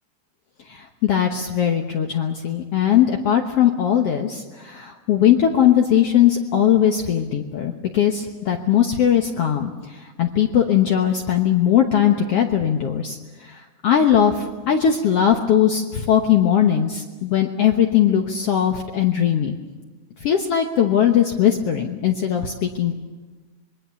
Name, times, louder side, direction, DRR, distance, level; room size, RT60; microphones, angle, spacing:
voice 1, 0.7-19.6 20.2-22.9, left 9 dB, 60° left, 3 dB, 1.9 m, -19 dB
26.5 x 21.5 x 7.0 m, 1.3 s
omnidirectional pair, 3.6 m